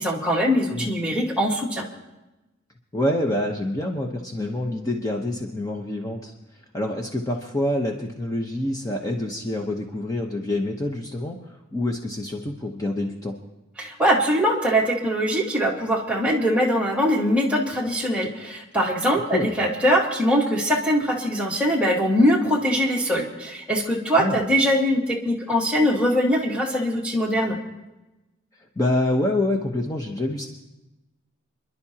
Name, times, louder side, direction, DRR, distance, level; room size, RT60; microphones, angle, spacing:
voice 1, 0.0-1.8 13.8-27.6, equal, 5° right, -3 dB, 1.7 m, -22 dB
voice 2, 2.9-6.3 6.7-13.3 19.3-19.5 24.2-24.4 28.8-30.5, left 1 dB, 15° left, 1 dB, 0.9 m, -26 dB
28.5 x 11.0 x 2.9 m, 1.0 s
head